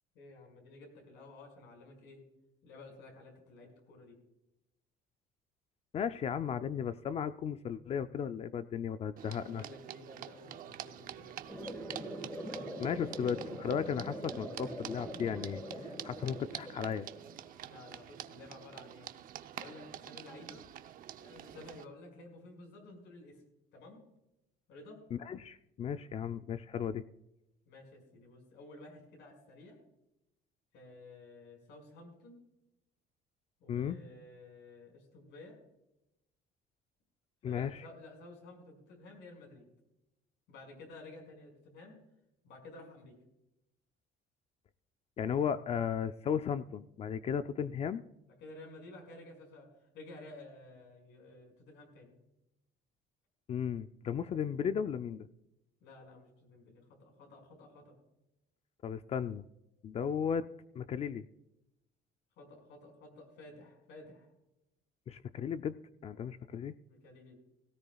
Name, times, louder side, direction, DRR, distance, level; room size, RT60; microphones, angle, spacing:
voice 1, 0.1-2.2 2.6-4.2 9.4-11.4 17.6-19.1 19.5-20.6 21.2-23.4 23.7-24.0 24.7-25.0 27.7-29.8 30.7-32.4 33.6-35.6 37.4-39.7 40.5-42.0 42.4-43.1 48.4-49.7 49.9-52.1 55.8-57.9 62.4-64.3 66.9-67.4, left 2 dB, 75° left, 2 dB, 5.4 m, -53 dB
voice 2, 5.9-9.6 12.8-15.6 16.0-17.1 25.1-27.0 33.7-34.0 37.4-37.9 45.2-48.0 53.5-55.3 58.8-59.4 59.8-60.5 60.8-61.3 65.1-65.8 66.0-66.8, left 7 dB, 35° left, 12 dB, 0.4 m, -35 dB
sound 1, 9.2-21.8, right 11 dB, 50° right, 0.7 m, -47 dB
sound 2, 11.5-17.5, equal, 10° left, 1.7 m, -43 dB
17.5 x 15.5 x 2.3 m, 0.89 s
cardioid pair, 155°, 18 cm